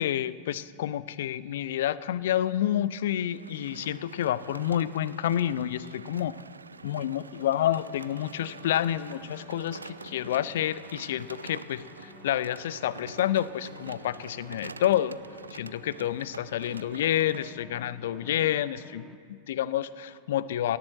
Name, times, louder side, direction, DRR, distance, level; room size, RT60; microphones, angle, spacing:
voice 1, 0.0-6.3 6.8-15.2 15.5-20.8, left 11 dB, 60° left, 18 dB, 0.4 m, -29 dB
sound 1, 3.3-17.5, right 4 dB, 75° right, 0.3 m, -46 dB
sound 2, 6.7-19.2, left 1 dB, 5° left, 0.7 m, -53 dB
17.5 x 7.6 x 7.7 m, 2.2 s
figure-of-eight pair, 90°, 0 cm